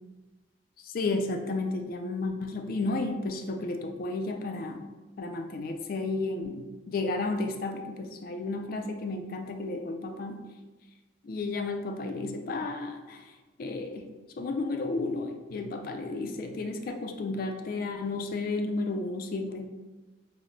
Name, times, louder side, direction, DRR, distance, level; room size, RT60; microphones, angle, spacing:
voice 1, 0.8-4.9 5.2-10.5 11.2-13.3 13.6-14.1 14.4-19.7, left 3 dB, 50° left, 5 dB, 0.3 m, -32 dB
3.8 x 2.0 x 3.2 m, 1.2 s
head